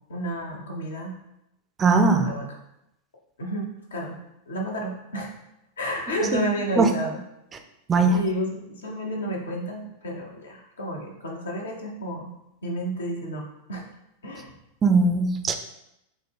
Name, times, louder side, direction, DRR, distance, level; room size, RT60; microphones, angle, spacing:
voice 1, 0.1-1.1 2.0-2.4 3.4-5.3 5.8-7.2 8.1-12.3 12.6-13.8 14.2-14.5, equal, 65° left, 1 dB, 0.9 m, -31 dB
voice 2, 1.8-2.3 6.3-6.4 6.8-6.9 7.9-8.2 14.8-15.5, right 3 dB, 20° right, 5 dB, 0.4 m, -19 dB
6.2 x 2.2 x 3.5 m, 0.84 s
figure-of-eight pair, 90°, 0 cm